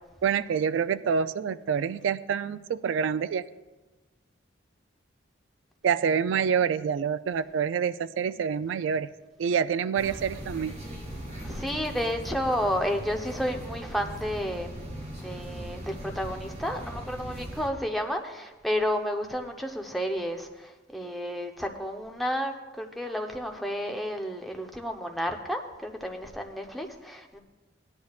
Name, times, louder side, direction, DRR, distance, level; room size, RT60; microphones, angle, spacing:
voice 1, 0.2-3.4 5.8-9.1 9.4-10.8, right 7 dB, 80° right, 14 dB, 0.3 m, -27 dB
sound 1, 9.9-17.7, equal, 35° right, 1.5 m, -39 dB
voice 2, 11.4-14.7 15.2-27.4, equal, ahead, 2 dB, 0.8 m, -31 dB
17.5 x 10.5 x 2.4 m, 1.2 s
head